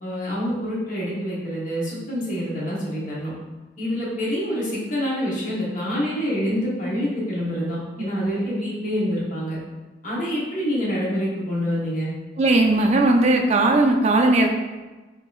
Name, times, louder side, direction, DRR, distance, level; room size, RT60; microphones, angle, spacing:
voice 1, 0.0-3.3 3.8-9.6 10.0-12.1, equal, 40° left, -6 dB, 1.0 m, -26 dB
voice 2, 12.4-14.5, right 2 dB, 35° right, 2 dB, 0.4 m, -18 dB
5.1 x 2.7 x 2.4 m, 1.2 s
head